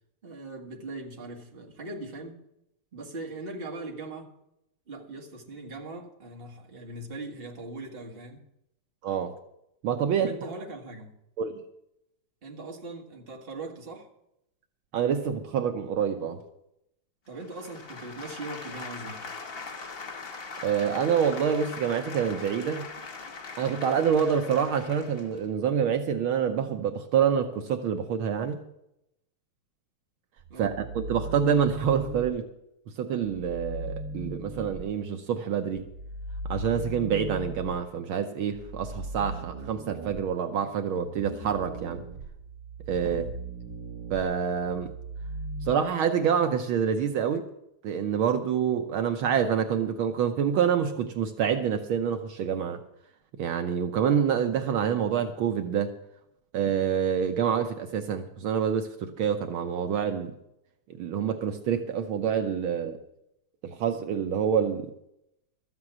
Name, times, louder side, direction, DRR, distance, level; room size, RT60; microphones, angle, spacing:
voice 1, 0.2-2.4 2.9-4.3 4.9-8.4 10.2-11.2 12.4-14.1 17.3-19.2 30.5-30.8 43.0-43.4, right 2 dB, 25° right, 0 dB, 1.8 m, -40 dB
voice 2, 9.0-9.3 9.8-10.5 11.4-11.6 14.9-16.4 20.6-22.9 23.6-28.6 30.6-32.5 33.0-35.9 36.5-42.0 42.9-43.3 44.1-44.9 45.6-47.5 47.8-52.8 53.4-56.0 56.5-60.3 61.0-63.0 63.6-64.9, right 7 dB, 75° right, 6 dB, 1.6 m, -27 dB
sound 1, 17.4-25.4, left 4 dB, 45° left, 0.8 m, -41 dB
sound 2, 30.4-32.3 33.2-34.8 35.8-37.8 38.5-45.7, right 2 dB, 50° right, 2.4 m, -38 dB
13.5 x 8.0 x 7.3 m, 0.82 s
omnidirectional pair, 2.4 m